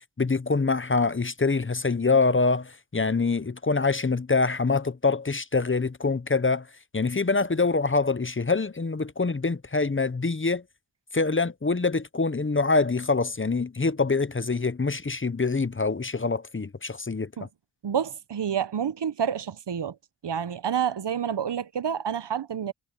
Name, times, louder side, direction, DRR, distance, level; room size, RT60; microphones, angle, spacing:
voice 1, 0.2-6.7 6.9-10.6 11.1-17.3, left 4 dB, 30° left, 0.8 m, -25 dB
voice 2, 17.8-20.0 20.2-22.7, right 8 dB, 75° right, 0.7 m, -28 dB
wide cardioid pair, 50°, 42 cm